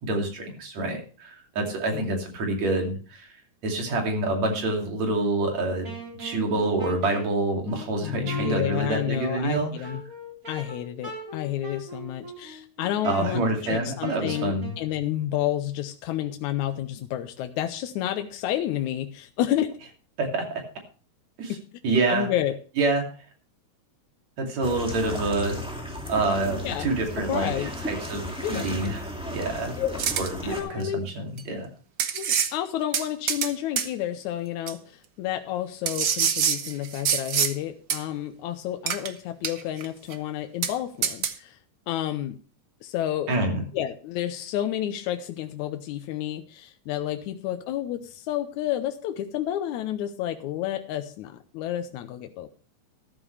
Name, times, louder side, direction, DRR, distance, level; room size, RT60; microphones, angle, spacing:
voice 1, 0.0-3.3 3.6-9.7 13.0-14.7 20.2-20.6 21.4-21.6 21.8-22.3 22.8-23.0 24.4-25.6 26.1-29.7 30.2-31.7 43.3-43.6, right 2 dB, 65° right, 1 dB, 3.9 m, -27 dB
Wind instrument woodwind instrument, 5.8-14.8, equal, 25° right, 4.2 m, -40 dB
voice 2, 8.0-10.0 10.5-19.7 21.5-21.6 22.1-22.6 26.6-26.9 27.2-27.7 28.4-28.7 29.8-30.0 30.4-31.0 32.1-41.6 41.9-42.4 42.8-43.3 43.7-52.6, left 12 dB, 85° left, 7 dB, 2.1 m, -30 dB
sound 1, 24.6-30.6, equal, ahead, 1.7 m, -35 dB
sound 2, 30.0-30.3 31.4-31.5 32.0-32.5 32.9-33.5 33.8-33.9 34.7-34.8 35.9-37.5 37.9-38.0 38.9-39.1 39.4-39.8 40.1-40.2 40.6-40.7 41.0-41.3, right 8 dB, 85° right, 0.9 m, -25 dB
13.5 x 13.0 x 3.3 m, 0.37 s
omnidirectional pair, 3.3 m